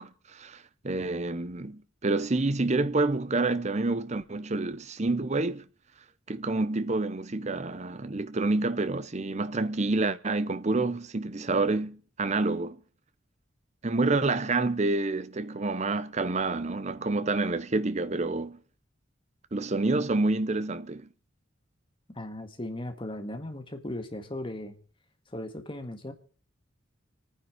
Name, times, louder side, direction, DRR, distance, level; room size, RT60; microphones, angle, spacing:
voice 1, 0.0-5.6 6.3-12.8 13.8-18.6 19.5-21.1, right 3 dB, 35° right, 0.8 m, -28 dB
voice 2, 22.1-24.7 25.3-26.1, left 1 dB, 25° left, 1.8 m, -37 dB
25.5 x 9.7 x 5.0 m
head